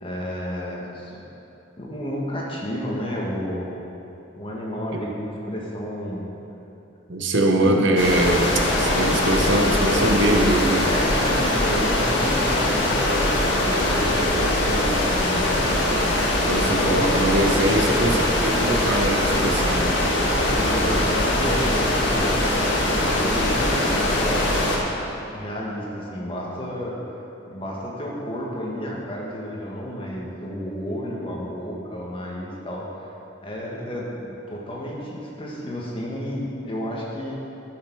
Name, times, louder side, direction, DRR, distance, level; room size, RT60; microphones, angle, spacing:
voice 1, 0.0-1.2 1.8-3.7 4.4-6.4 7.6-7.7 10.8-16.3 16.5-17.6 20.2-22.3 23.2-24.8 25.3-27.0 27.5-33.1 33.4-37.4, equal, 30° left, -3 dB, 1.6 m, -31 dB
voice 2, 7.1-8.5 8.8-10.9 15.6-15.9 16.4-19.9, right 1 dB, 85° right, 2 dB, 1.0 m, -22 dB
sound 1, 8.0-24.8, left 1 dB, 90° left, 1.7 m, -22 dB
11.5 x 6.7 x 4.7 m, 2.9 s
head